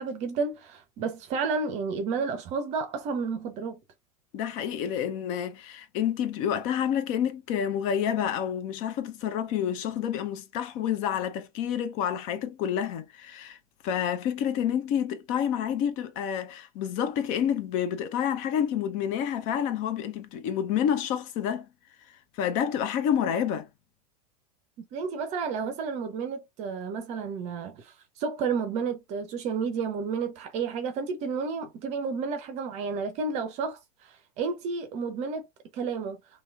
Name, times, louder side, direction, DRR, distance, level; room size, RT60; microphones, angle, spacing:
voice 1, 0.0-3.8 24.8-35.4 35.7-36.2, right 5 dB, 35° right, 0.6 m, -31 dB
voice 2, 4.3-13.6 13.8-21.7 22.4-23.7, left 9 dB, 40° left, 0.6 m, -28 dB
2.9 x 2.8 x 2.3 m
figure-of-eight pair, 85°, 20 cm